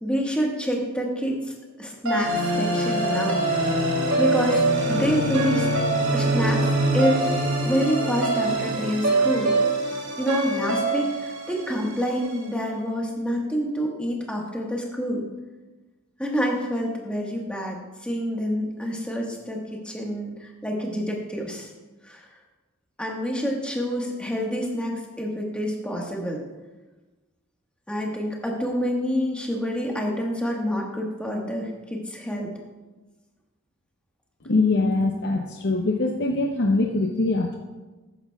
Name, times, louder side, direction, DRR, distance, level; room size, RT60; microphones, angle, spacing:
voice 1, 0.0-3.4 4.2-5.7 6.1-6.7 6.9-7.3 7.6-9.5 10.2-15.2 16.2-21.7 22.0-22.3 23.0-26.4 27.9-32.5, equal, 5° left, -1 dB, 1.4 m, -27 dB
sound 1, 2.0-12.3, right 2 dB, 75° right, 2.7 m, -24 dB
voice 2, 34.4-37.5, left 2 dB, 55° left, 2 dB, 0.7 m, -23 dB
13.0 x 10.0 x 2.3 m, 1.2 s
head